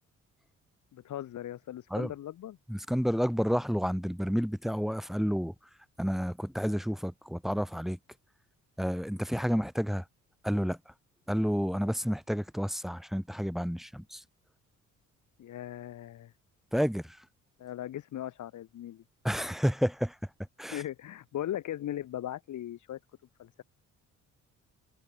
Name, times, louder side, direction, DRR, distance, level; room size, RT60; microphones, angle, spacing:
voice 1, 0.9-2.6 15.4-16.3 17.6-19.0 20.7-23.0 23.4-23.6, left 12 dB, 75° left, 5.4 m, -38 dB
voice 2, 2.7-5.5 6.0-8.0 8.8-10.0 10.4-10.8 11.3-14.2 16.7-17.2 19.2-20.2 20.6-20.8, equal, ahead, 1.2 m, -30 dB
cardioid pair, 90°, 30 cm